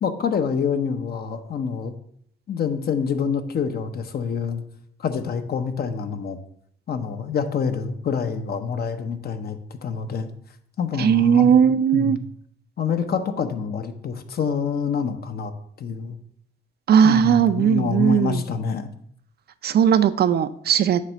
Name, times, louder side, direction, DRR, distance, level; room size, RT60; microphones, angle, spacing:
voice 1, 0.0-1.9 2.5-4.6 5.0-6.4 6.9-10.3 10.8-11.5 11.9-12.2 12.8-15.5 15.8-16.2 17.0-18.9, left 6 dB, 50° left, 8 dB, 0.8 m, -26 dB
voice 2, 11.0-12.2 16.9-18.4 19.6-21.0, right 8 dB, 55° right, 12 dB, 0.5 m, -18 dB
7.4 x 3.3 x 6.2 m, 0.66 s
cardioid pair, 90°, 20 cm